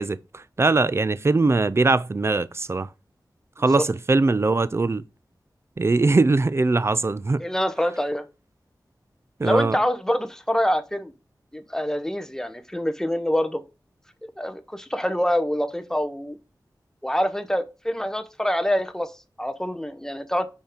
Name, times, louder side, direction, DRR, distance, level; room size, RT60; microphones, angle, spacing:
voice 1, 0.0-2.9 3.6-5.0 5.8-7.4 9.4-9.8, right 3 dB, 35° right, 0.4 m, -21 dB
voice 2, 7.4-8.2 9.4-11.1 11.5-13.6 14.4-16.4 17.0-19.1 19.4-20.5, equal, 5° left, 0.8 m, -25 dB
5.5 x 4.5 x 4.9 m
wide cardioid pair, 85°, 8 cm